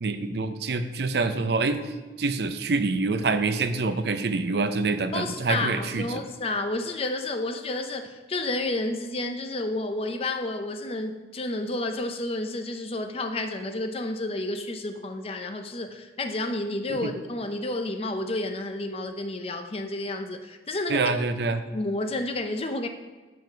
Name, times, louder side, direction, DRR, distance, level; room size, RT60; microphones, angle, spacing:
voice 1, 0.0-1.9 2.2-6.1 17.0-17.1 20.9-21.6, right 3 dB, 65° right, 10 dB, 0.5 m, -26 dB
voice 2, 5.1-21.0 21.7-22.9, left 2 dB, 35° left, 6 dB, 0.6 m, -30 dB
7.8 x 4.7 x 5.1 m, 1.2 s
head